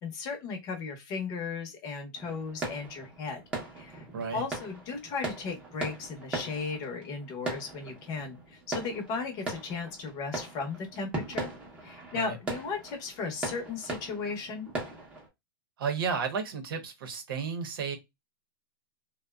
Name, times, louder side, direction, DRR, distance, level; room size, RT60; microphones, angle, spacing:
voice 1, 0.0-3.4 3.8-4.0 4.3-11.5 11.8-14.7, left 4 dB, 30° left, 0.7 m, -36 dB
sound 1, 2.1-15.3, right 2 dB, 10° right, 0.7 m, -40 dB
voice 2, 15.8-18.0, right 6 dB, 70° right, 0.8 m, -32 dB
2.6 x 2.1 x 2.2 m
hypercardioid pair, 155°, 12 cm